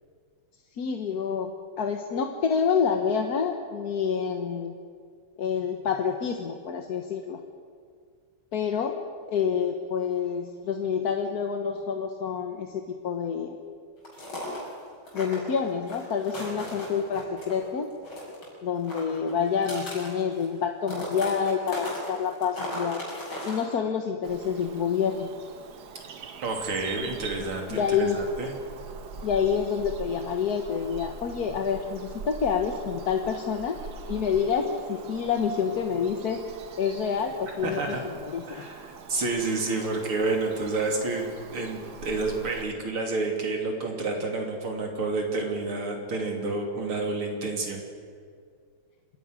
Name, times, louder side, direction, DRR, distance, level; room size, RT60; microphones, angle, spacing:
voice 1, 0.8-1.5 1.8-4.7 5.4-7.4 8.5-9.0 9.3-13.6 15.1-17.9 18.6-23.0 23.4-25.3 27.7-28.2 29.2-33.8 34.1-36.4 36.8-38.0 38.2-38.6, left 6 dB, 50° left, 4 dB, 1.5 m, -27 dB
sound 1, 14.0-14.7 15.1-17.6 17.9-18.5 18.7-20.6 20.8-23.7, left 1 dB, 75° left, 6.8 m, -36 dB
Bird vocalization bird call bird song, 24.2-42.6, right 6 dB, 55° right, 1.6 m, -43 dB
voice 2, 26.4-28.5 37.6-38.0 38.5-47.8, right 3 dB, 90° right, 2 dB, 3.8 m, -29 dB
27.0 x 11.0 x 9.5 m, 2.1 s
omnidirectional pair, 2.3 m